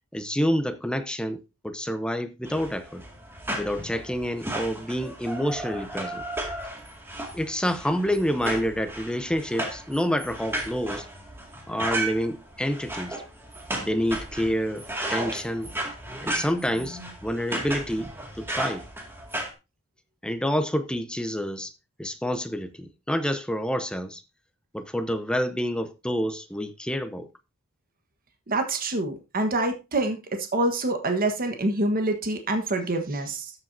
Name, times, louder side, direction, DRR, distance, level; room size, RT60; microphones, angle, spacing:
voice 1, 0.1-3.0 3.6-6.2 7.3-11.1 11.7-13.2 13.8-15.7 16.2-18.1 18.4-18.8 20.2-21.7 22.0-24.2 24.7-27.3, equal, 5° left, 0.8 m, -28 dB
sound 1, 2.4-19.5, right 1 dB, 10° right, 2.2 m, -34 dB
voice 2, 28.5-30.2 30.5-33.5, right 2 dB, 45° right, 1.4 m, -26 dB
13.5 x 7.7 x 2.7 m
head